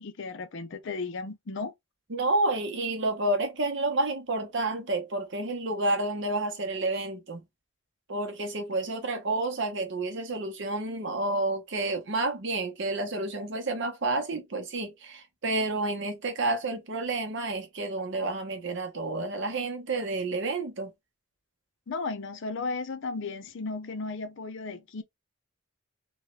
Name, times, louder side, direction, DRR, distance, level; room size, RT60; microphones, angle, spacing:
voice 1, 0.0-1.7 21.9-25.0, left 3 dB, 60° left, 0.6 m, -35 dB
voice 2, 2.1-7.4 8.1-20.9, right 2 dB, 60° right, 0.8 m, -30 dB
3.0 x 2.4 x 3.0 m
head